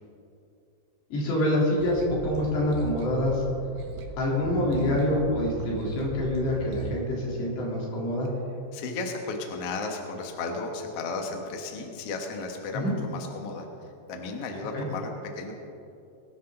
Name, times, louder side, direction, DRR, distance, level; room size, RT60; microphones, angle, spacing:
voice 1, 1.1-3.4 4.2-8.3 12.7-12.9 14.7-14.8, left 1 dB, 65° left, -4 dB, 5.4 m, -26 dB
sound 1, 1.8-6.9, right 4 dB, 65° right, 2.0 m, -38 dB
voice 2, 8.7-13.7 14.1-15.5, left 3 dB, 90° left, 2 dB, 1.3 m, -34 dB
21.5 x 12.0 x 3.9 m, 2.7 s
omnidirectional pair, 5.3 m